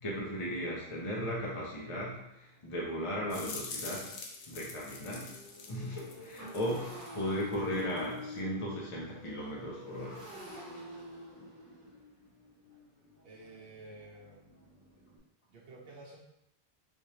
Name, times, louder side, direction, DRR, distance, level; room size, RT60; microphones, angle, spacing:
voice 1, 0.0-4.1 4.5-5.4 5.7-10.2, equal, 35° left, -4 dB, 0.7 m, -36 dB
Motorcycle, 2.6-2.7 3.1-3.3 3.6-15.2, left 2 dB, 15° right, 1.0 m, -48 dB
sound 1, 3.3-7.1 7.4-8.2, left 4 dB, 65° left, 0.8 m, -45 dB
voice 2, 13.2-14.5 15.5-16.2, right 2 dB, 65° right, -3 dB, 1.1 m, -51 dB
3.4 x 3.1 x 2.9 m, 0.81 s
omnidirectional pair, 1.1 m